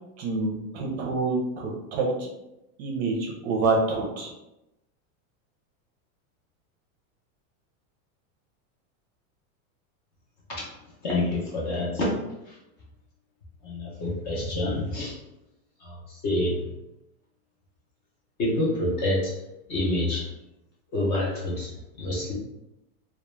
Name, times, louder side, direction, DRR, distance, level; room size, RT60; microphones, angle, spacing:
voice 1, 0.2-2.3 2.8-4.3, right 3 dB, 50° right, 1 dB, 0.5 m, -27 dB
voice 2, 11.0-12.1 12.5-12.6 13.6-15.2 15.8-16.6 18.4-19.3 19.7-20.3 20.9-21.7 22.0-22.3, left 1 dB, 30° left, -4 dB, 0.5 m, -27 dB
2.2 x 2.0 x 3.0 m, 0.90 s
supercardioid pair, 170°, 42 cm